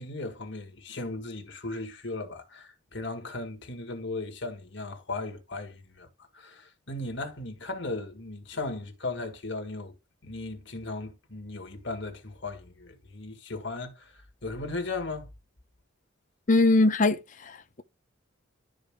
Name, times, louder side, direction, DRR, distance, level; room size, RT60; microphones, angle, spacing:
voice 1, 0.0-6.1 6.3-9.9 10.2-15.3, left 2 dB, 55° left, 1.9 m, -37 dB
voice 2, 16.5-17.8, left 2 dB, 40° left, 0.7 m, -22 dB
12.0 x 4.9 x 2.2 m
head